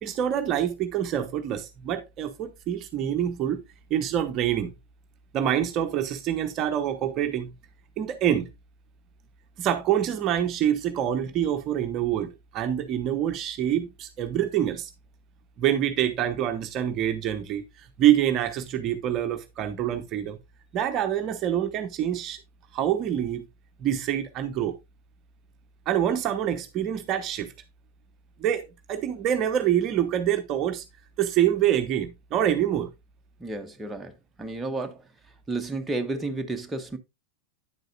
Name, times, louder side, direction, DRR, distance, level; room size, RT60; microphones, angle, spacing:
voice 1, 0.0-3.6 3.9-4.7 5.3-7.5 8.0-8.5 9.6-14.9 15.6-20.4 20.7-22.4 22.7-23.5 23.8-24.8 25.9-27.5 28.4-30.8 31.2-32.9, right 10 dB, 35° right, 0.9 m, -26 dB
voice 2, 33.4-34.1 34.4-35.0 35.5-37.0, right 2 dB, 10° right, 1.1 m, -31 dB
9.7 x 7.8 x 2.4 m
figure-of-eight pair, 90°, 0 cm